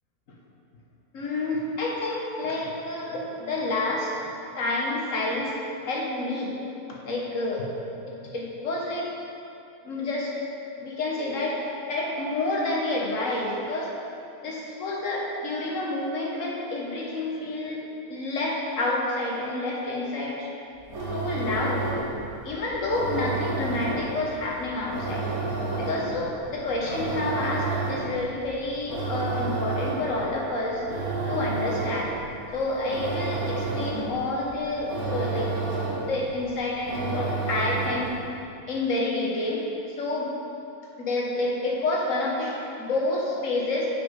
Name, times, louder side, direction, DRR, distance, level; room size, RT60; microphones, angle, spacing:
voice 1, 1.1-4.2 4.6-5.5 5.9-6.6 7.0-7.7 8.0-9.1 9.8-10.3 10.8-13.9 14.4-17.8 18.1-20.5 21.1-21.9 22.4-25.3 25.8-30.8 31.3-32.1 32.5-35.5 36.0-38.1 38.7-39.6 40.0-40.3 41.0-43.9, left 2 dB, 60° left, -3 dB, 1.6 m, -29 dB
sound 1, 20.8-38.2, right 3 dB, 80° right, 1.6 m, -31 dB
7.0 x 5.8 x 4.8 m, 2.6 s
omnidirectional pair, 1.5 m